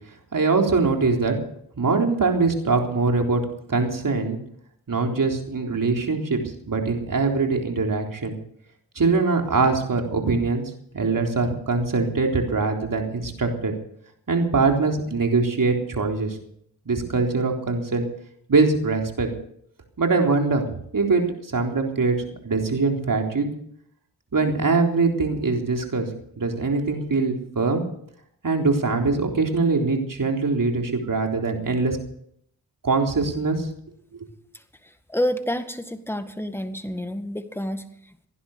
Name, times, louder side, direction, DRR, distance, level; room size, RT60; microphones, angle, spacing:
voice 1, 0.3-1.3 1.8-3.4 3.7-4.4 4.9-8.4 9.0-10.6 10.9-13.7 14.3-16.4 16.9-18.1 18.5-19.3 20.0-20.7 20.9-22.2 22.4-23.5 24.3-26.1 26.4-27.8 28.4-32.0 32.8-33.7 34.1-34.3, right 4 dB, 50° right, 2 dB, 3.9 m, -22 dB
voice 2, 34.5-38.3, equal, 5° left, 9 dB, 1.9 m, -29 dB
17.0 x 11.0 x 6.8 m, 0.68 s
supercardioid pair, 45°, 41 cm